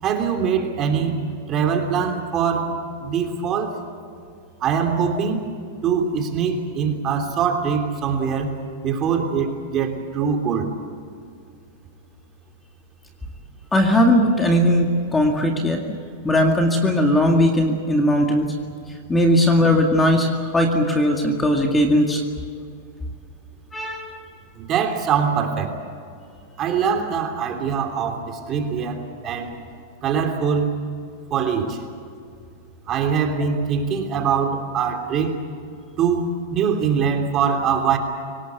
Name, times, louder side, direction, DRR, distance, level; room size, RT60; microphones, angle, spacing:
voice 1, 0.0-2.7 3.0-3.8 4.6-5.4 5.8-8.6 8.8-10.7 24.6-25.7 26.6-29.6 30.0-30.8 31.3-31.8 32.9-35.4 36.0-38.0, right 6 dB, 30° right, 4 dB, 3.2 m, -23 dB
voice 2, 13.7-15.8 16.2-18.5 18.9-22.2 23.7-24.2, left 1 dB, 10° left, 2 dB, 2.1 m, -18 dB
25.5 x 18.5 x 8.4 m, 2.4 s
supercardioid pair, 150°, 0 cm